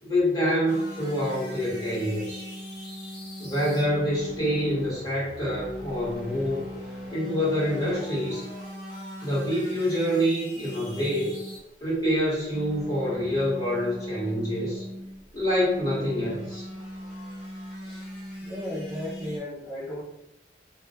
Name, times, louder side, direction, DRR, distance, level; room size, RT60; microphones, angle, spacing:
voice 1, 0.0-2.4 3.4-6.7 7.1-8.4 9.2-11.3 11.8-14.8 15.3-16.6, equal, 20° left, -8 dB, 1.1 m, -26 dB
sound 1, 0.7-19.4, equal, 55° left, 1.0 m, -40 dB
voice 2, 18.4-20.0, left 1 dB, 20° right, -6 dB, 0.4 m, -35 dB
2.2 x 2.1 x 2.7 m, 0.81 s
head